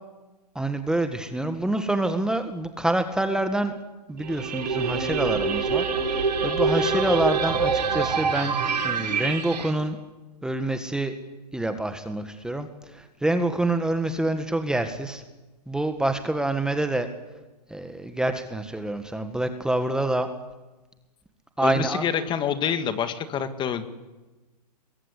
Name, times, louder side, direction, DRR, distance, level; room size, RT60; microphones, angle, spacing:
voice 1, 0.5-3.7 4.1-8.6 8.8-10.0 10.4-11.1 11.5-15.2 15.7-17.1 17.7-20.3 21.6-22.0, right 1 dB, 5° right, 8 dB, 1.7 m, -27 dB
sound 1, 4.2-9.7, right 5 dB, 80° right, 5.9 m, -25 dB
voice 2, 21.6-23.9, left 8 dB, 20° left, 10 dB, 2.0 m, -27 dB
24.5 x 22.0 x 10.0 m, 1.1 s
hypercardioid pair, 125°, 21 cm